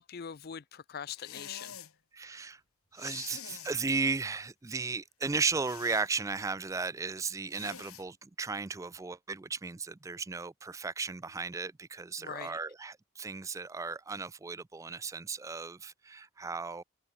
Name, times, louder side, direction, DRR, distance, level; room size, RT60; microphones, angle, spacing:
voice 1, 0.0-1.8 12.2-12.6, left 7 dB, 45° left, 0.5 m, -42 dB
sound 1, 1.1-1.9 3.0-3.8 5.6-6.1 7.5-8.0, left 10 dB, 85° left, 2.1 m, -46 dB
voice 2, 2.1-2.6 2.9-16.8, right 4 dB, 15° right, 0.3 m, -35 dB
open air
head